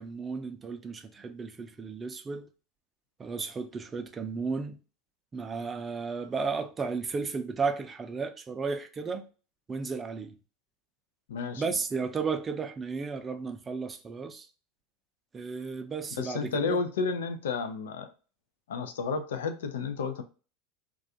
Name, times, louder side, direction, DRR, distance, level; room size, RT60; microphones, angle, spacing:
voice 1, 0.0-2.5 3.2-4.8 5.3-9.2 9.7-10.4 11.6-14.5 15.3-16.8, right 4 dB, 25° right, 0.4 m, -34 dB
voice 2, 11.3-11.6 16.2-18.1 18.7-20.2, left 5 dB, 80° left, 0.4 m, -31 dB
2.4 x 2.3 x 2.6 m
hypercardioid pair, 90°, 0 cm